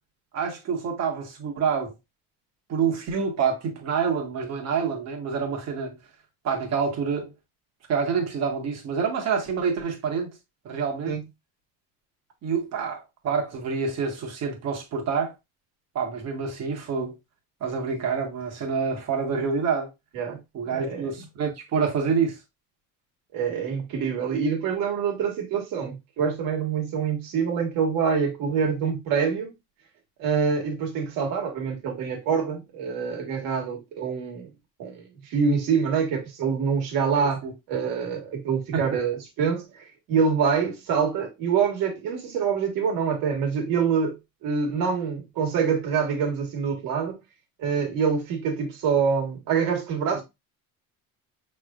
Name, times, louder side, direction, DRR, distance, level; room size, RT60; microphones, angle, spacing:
voice 1, 0.3-1.9 2.7-6.0 6.4-7.3 7.9-10.4 10.6-11.2 12.4-15.3 15.9-17.2 17.6-19.9 20.5-22.4 37.2-37.5 38.7-38.8 50.1-50.2, right 6 dB, 50° right, 1.4 m, -27 dB
voice 2, 20.7-21.1 23.3-29.5 30.2-34.5 34.8-47.1 47.6-50.2, right 6 dB, 70° right, 1.7 m, -26 dB
5.9 x 3.3 x 2.4 m
cardioid pair, 160°, 34 cm